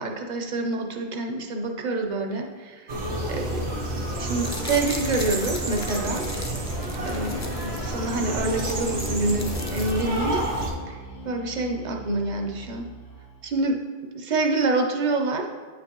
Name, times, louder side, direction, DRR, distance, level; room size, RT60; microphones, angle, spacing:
voice 1, 0.0-2.9 3.3-3.6 4.1-6.3 7.1-10.5 11.2-12.9 13.4-15.5, right 2 dB, 50° right, 3 dB, 0.7 m, -27 dB
sound 1, 2.9-10.7, right 1 dB, 90° right, 1.3 m, -29 dB
sound 2, 4.1-7.8 8.2-8.3 8.5-10.4 10.7-10.8, left 2 dB, 25° left, 0.4 m, -39 dB
sound 3, 6.9-13.5, left 2 dB, 75° left, 1.1 m, -41 dB
8.6 x 5.1 x 3.0 m, 1.5 s
omnidirectional pair, 1.1 m